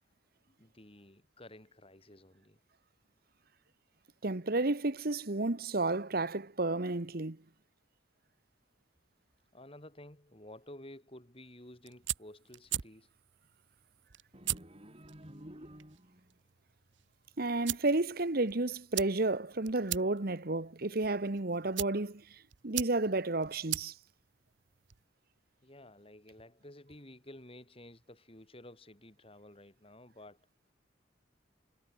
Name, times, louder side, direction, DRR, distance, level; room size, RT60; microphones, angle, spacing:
voice 1, 0.5-2.6 9.5-13.1 25.6-30.5, left 1 dB, 30° left, 4.1 m, -53 dB
voice 2, 4.2-7.4 17.4-22.2 22.6-23.9, right 2 dB, 50° right, 1.2 m, -31 dB
sound 1, 11.7-25.1, right 14 dB, 70° right, 1.0 m, -42 dB
sound 2, 14.3-16.4, equal, 30° right, 4.7 m, -51 dB
head